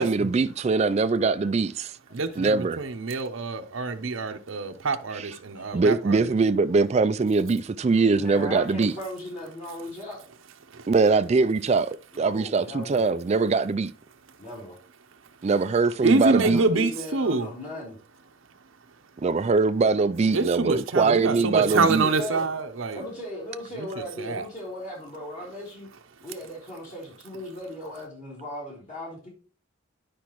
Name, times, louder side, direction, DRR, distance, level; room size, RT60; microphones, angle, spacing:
voice 1, 0.0-1.7 2.4-2.8 5.1-5.3 5.7-8.9 10.9-13.9 15.4-16.6 19.2-22.1, right 4 dB, 35° right, 0.3 m, -22 dB
voice 2, 2.1-6.2 16.0-17.5 20.3-23.0 24.0-24.4, right 3 dB, 80° right, 0.7 m, -26 dB
voice 3, 7.9-10.2 12.1-13.1 14.4-14.8 16.2-18.0 21.3-22.5 22.9-25.9 26.2-29.3, left 1 dB, 35° left, 3.4 m, -37 dB
10.5 x 5.0 x 3.0 m
head